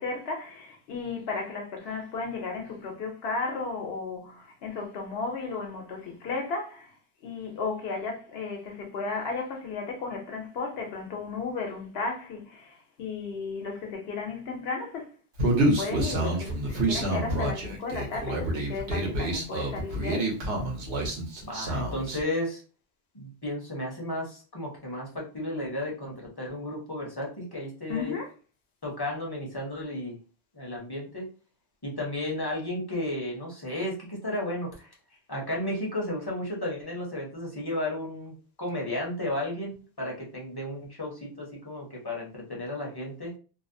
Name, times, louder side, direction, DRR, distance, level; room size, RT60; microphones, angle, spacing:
voice 1, 0.0-6.9 7.2-15.1 15.6-20.3 27.9-28.3, left 4 dB, 70° left, 0.9 m, -34 dB
Human voice, 15.4-22.2, right 1 dB, 70° right, 1.0 m, -28 dB
voice 2, 21.5-22.6 23.1-28.2 28.8-30.2 30.5-31.3 31.8-34.9 35.3-43.3, left 1 dB, 25° left, 0.6 m, -33 dB
2.6 x 2.0 x 2.6 m
omnidirectional pair, 1.1 m